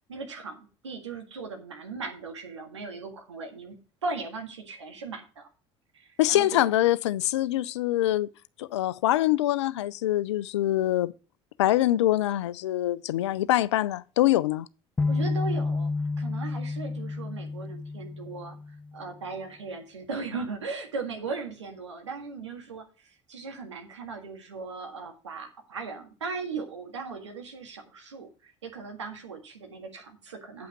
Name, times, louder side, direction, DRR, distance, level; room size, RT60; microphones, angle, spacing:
voice 1, 0.1-3.8 4.0-5.5 5.9-6.7 15.1-15.9 16.2-18.6 18.9-30.7, right 4 dB, 90° right, 1.8 m, -38 dB
voice 2, 6.2-8.3 8.6-11.1 11.6-14.7, left 14 dB, 80° left, 0.5 m, -24 dB
sound 1, 15.0-19.0, left 3 dB, 10° left, 0.3 m, -30 dB
8.6 x 5.6 x 6.0 m
hypercardioid pair, 60°, 15 cm